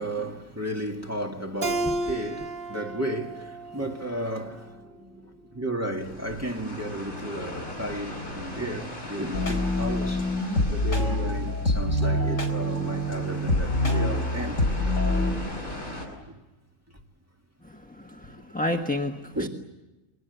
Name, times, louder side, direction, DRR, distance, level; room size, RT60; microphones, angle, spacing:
voice 1, 0.0-14.6 19.4-19.5, right 1 dB, 10° right, 2.1 m, -33 dB
Keyboard (musical), 1.6-4.9, right 2 dB, 45° right, 1.4 m, -33 dB
sound 1, 6.0-16.1, left 1 dB, 60° left, 8.4 m, -39 dB
sound 2, 9.3-15.3, left 1 dB, 75° left, 4.4 m, -25 dB
voice 2, 17.6-19.5, left 1 dB, 5° left, 1.2 m, -31 dB
29.5 x 22.5 x 8.2 m
omnidirectional pair, 1.3 m